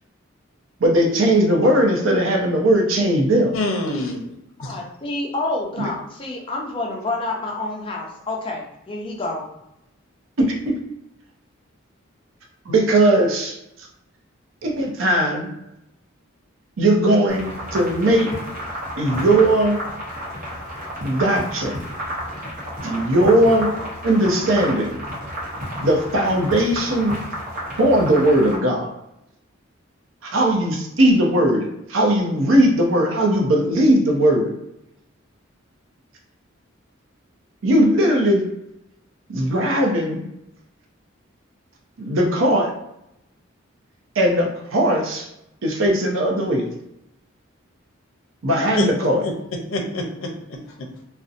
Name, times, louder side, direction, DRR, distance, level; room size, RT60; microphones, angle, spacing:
voice 1, 0.8-3.5 5.8-5.9 10.4-10.8 12.7-13.6 14.6-15.5 16.8-18.3 19.0-19.8 21.0-21.8 22.8-23.7 24.0-25.0 25.8-27.1 27.8-28.9 30.2-34.5 37.6-38.4 39.3-40.3 42.0-42.7 44.2-45.3 45.6-46.7 48.4-49.2, right 1 dB, 75° right, 1 dB, 0.6 m, -18 dB
voice 2, 3.5-4.3 4.6-4.8 48.8-48.9 49.2-49.3 49.7-50.9, left 1 dB, 80° left, 1 dB, 0.6 m, -26 dB
voice 3, 4.6-9.4, left 2 dB, 25° left, -1 dB, 0.5 m, -28 dB
sound 1, 17.3-28.6, equal, 40° right, 0.8 m, -31 dB
2.6 x 2.1 x 2.4 m, 0.83 s
head